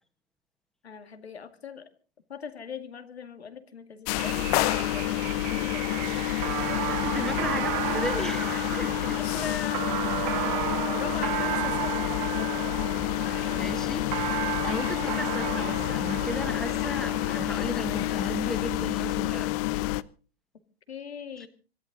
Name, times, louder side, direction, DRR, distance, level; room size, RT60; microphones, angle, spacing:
voice 1, 0.8-1.9 2.3-6.1 9.1-9.9 10.9-12.2 20.9-21.5, left 6 dB, 85° left, 7 dB, 2.2 m, -40 dB
sound 1, 4.1-20.0, left 17 dB, 40° left, 0.7 m, -29 dB
sound 2, 4.2-17.4, right 18 dB, 40° right, 1.0 m, -34 dB
voice 2, 7.0-9.2 11.0-11.1 13.5-14.0 14.7-19.5, equal, ahead, 8 dB, 1.7 m, -35 dB
sound 3, 13.2-18.6, left 6 dB, 70° left, 6.1 m, -42 dB
25.5 x 11.5 x 3.9 m, 0.38 s
hypercardioid pair, 115°, 31 cm